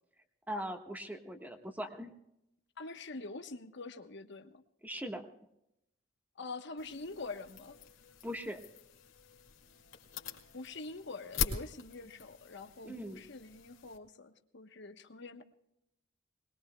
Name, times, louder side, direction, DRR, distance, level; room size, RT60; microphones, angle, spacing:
voice 1, 0.5-2.1 4.8-5.2 8.2-8.6 12.8-13.2, equal, 10° right, 5 dB, 1.3 m, -40 dB
voice 2, 2.8-4.5 6.4-7.8 10.5-15.4, left 3 dB, 60° left, 6 dB, 1.1 m, -45 dB
sound 1, 6.8-14.0, left 6 dB, 85° left, 2.3 m, -43 dB
21.5 x 21.5 x 2.3 m, 0.81 s
head